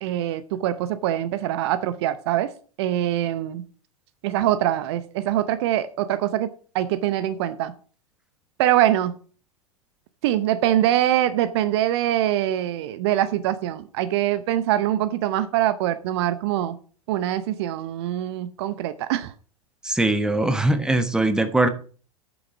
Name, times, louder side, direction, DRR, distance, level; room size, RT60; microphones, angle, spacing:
voice 1, 0.0-2.5 2.8-3.6 4.2-7.7 8.6-9.1 10.2-16.8 17.1-19.3, right 12 dB, 50° right, 0.7 m, -23 dB
voice 2, 19.8-21.7, right 2 dB, 5° right, 1.0 m, -21 dB
8.8 x 7.1 x 4.8 m
figure-of-eight pair, 95°, 18 cm